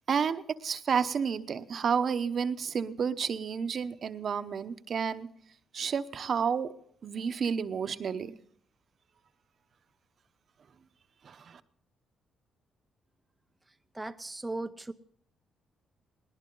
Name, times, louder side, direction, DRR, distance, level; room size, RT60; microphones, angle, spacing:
voice 1, 0.1-5.3 5.7-6.7 7.0-8.3 11.2-11.6, right 6 dB, 50° right, 11 dB, 0.9 m, -30 dB
voice 2, 13.9-14.9, right 2 dB, 15° right, 7 dB, 0.6 m, -37 dB
19.0 x 19.0 x 3.9 m, 0.64 s
cardioid pair, 90°, 0 cm